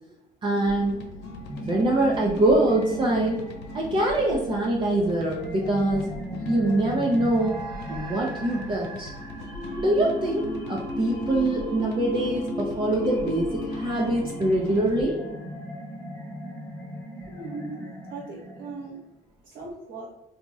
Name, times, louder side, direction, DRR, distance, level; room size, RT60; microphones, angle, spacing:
voice 1, 0.4-0.9 1.5-3.4 3.7-6.1 6.5-7.6 7.9-9.1 9.8-15.2, right 1 dB, 30° right, -2 dB, 0.5 m, -24 dB
sound 1, 0.5-15.1, left 3 dB, 90° left, 0.4 m, -41 dB
sound 2, 1.1-19.1, equal, 15° left, 0.8 m, -36 dB
sound 3, 7.3-12.0, right 3 dB, 85° right, 1.0 m, -43 dB
voice 2, 17.3-17.8 18.1-19.0 19.4-20.1, right 3 dB, 55° right, -5 dB, 0.8 m, -38 dB
2.9 x 2.6 x 2.3 m, 0.91 s
cardioid pair, 110°, 17 cm